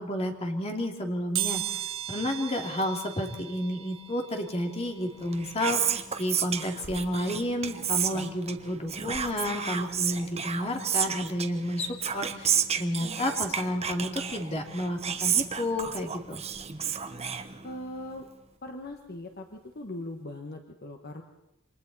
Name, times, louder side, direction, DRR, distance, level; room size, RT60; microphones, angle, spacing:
voice 1, 0.0-1.8 2.1-16.4, left 1 dB, 30° left, 2 dB, 2.7 m, -31 dB
sound 1, 1.3-12.0 12.5-12.6 13.7-13.8 14.1-16.2 16.6-19.2 19.5-19.7 20.0-20.1, right 12 dB, 85° right, 5.1 m, -40 dB
Whispering, 5.1-18.0, right 8 dB, 30° right, 1.2 m, -32 dB
voice 2, 17.6-18.3 18.6-21.2, left 1 dB, 50° left, 3 dB, 1.5 m, -40 dB
28.5 x 25.5 x 4.2 m, 0.87 s
head